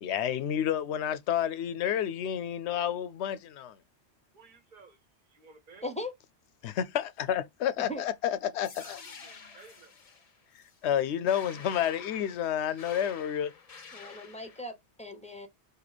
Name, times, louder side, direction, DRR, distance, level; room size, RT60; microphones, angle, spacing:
voice 1, 0.0-3.7 6.6-9.0 10.8-13.5, left 9 dB, 75° left, 0.8 m, -30 dB
voice 2, 4.3-5.9 8.8-9.9, right 5 dB, 45° right, 1.1 m, -56 dB
voice 3, 5.8-6.1 7.8-8.0 13.9-15.5, left 1 dB, 5° left, 0.7 m, -39 dB
sound 1, 8.6-14.6, left 5 dB, 40° left, 0.6 m, -49 dB
3.0 x 2.8 x 3.9 m
omnidirectional pair, 1.1 m